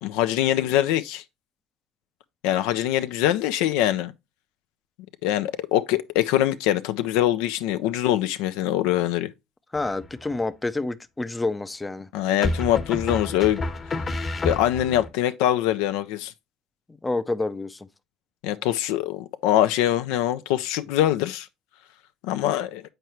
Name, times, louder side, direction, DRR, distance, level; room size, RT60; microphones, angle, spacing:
voice 1, 0.0-1.2 2.4-4.1 5.2-9.3 12.1-13.6 14.4-16.3 18.4-21.5 22.2-22.8, left 12 dB, 70° left, 0.4 m, -23 dB
voice 2, 9.7-12.1 17.0-17.9, left 2 dB, 15° left, 0.5 m, -28 dB
sound 1, 9.8-10.4 12.4-15.1, left 2 dB, 35° left, 1.1 m, -29 dB
7.7 x 4.6 x 3.0 m
hypercardioid pair, 70°, 0 cm